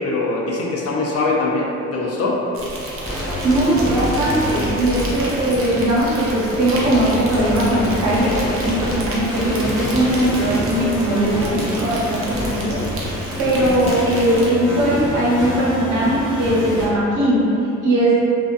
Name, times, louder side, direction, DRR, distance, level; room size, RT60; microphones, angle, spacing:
voice 1, 0.0-2.5 13.4-13.7, left 2 dB, 55° left, -2 dB, 0.5 m, -22 dB
Insect, 2.5-14.5, right 1 dB, 45° right, 0.6 m, -32 dB
sound 1, 3.0-16.9, left 1 dB, 15° left, 1.0 m, -27 dB
voice 2, 3.4-12.8 13.0-13.1 13.4-17.4 17.8-18.1, right 1 dB, 80° right, -7 dB, 0.8 m, -19 dB
2.4 x 2.2 x 2.4 m, 2.8 s
cardioid pair, 90°, 30 cm